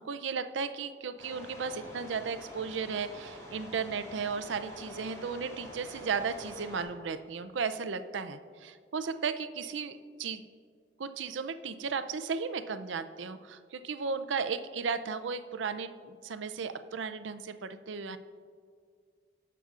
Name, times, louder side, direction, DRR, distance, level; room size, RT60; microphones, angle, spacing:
voice 1, 0.0-10.5 11.0-18.2, right 5 dB, 90° right, 11 dB, 0.5 m, -35 dB
sound 1, 1.2-6.8, equal, 20° left, 2.4 m, -47 dB
18.5 x 6.8 x 2.5 m, 2.1 s
head